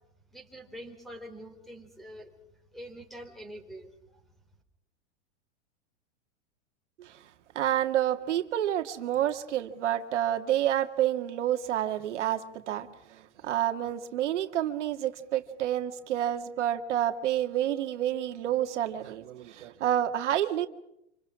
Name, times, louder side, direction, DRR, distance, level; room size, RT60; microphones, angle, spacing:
voice 1, 0.3-2.3 2.7-3.9, equal, ahead, 4.1 m, -45 dB
voice 2, 7.6-20.7, right 11 dB, 85° right, 2.0 m, -29 dB
27.0 x 25.5 x 6.3 m
supercardioid pair, 145°, 35 cm